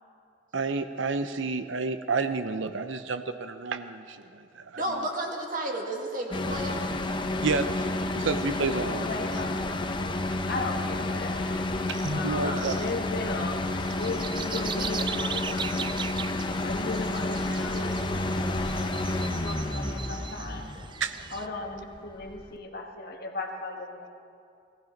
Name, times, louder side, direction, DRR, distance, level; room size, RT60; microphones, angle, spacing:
voice 1, 0.5-5.0 7.4-7.9 8.1-9.1 11.9-12.8 21.0-21.1, right 4 dB, 80° right, 10 dB, 0.7 m, -30 dB
voice 2, 4.8-6.8 12.4-12.7 18.3-18.5, right 1 dB, 45° right, 1 dB, 2.0 m, -32 dB
sound 1, 6.3-22.5, left 2 dB, 25° left, 0.7 m, -30 dB
voice 3, 8.8-9.7 10.0-11.7 12.1-13.6 13.9-15.9 16.6-18.6 19.3-20.8 21.3-24.1, left 3 dB, 55° left, 2 dB, 1.5 m, -37 dB
sound 2, 13.6-21.5, right 7 dB, 25° right, 0.3 m, -39 dB
19.0 x 14.5 x 5.2 m, 2.5 s
head